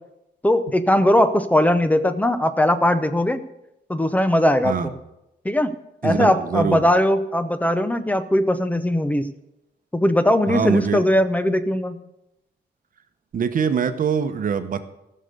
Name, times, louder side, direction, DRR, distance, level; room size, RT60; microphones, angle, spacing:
voice 1, 0.4-3.4 3.9-4.9 5.4-5.7 6.0-9.3 9.9-12.0, left 1 dB, 10° left, 11 dB, 0.6 m, -19 dB
voice 2, 6.0-6.9 10.5-11.0 13.3-14.8, right 6 dB, 50° right, 9 dB, 0.9 m, -23 dB
15.0 x 6.7 x 6.6 m, 0.90 s
wide cardioid pair, 170°, 18 cm